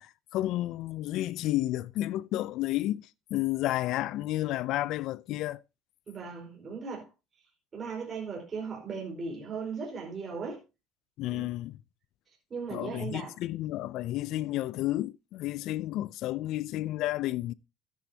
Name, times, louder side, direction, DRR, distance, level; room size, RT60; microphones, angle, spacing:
voice 1, 0.0-5.6 11.2-11.8 12.7-17.5, left 15 dB, 65° left, 0.5 m, -31 dB
voice 2, 6.1-7.1 7.7-10.6 11.3-11.5 12.5-13.3, right 5 dB, 30° right, 5.0 m, -37 dB
13.5 x 10.5 x 2.9 m
cardioid pair, 135°, 0 cm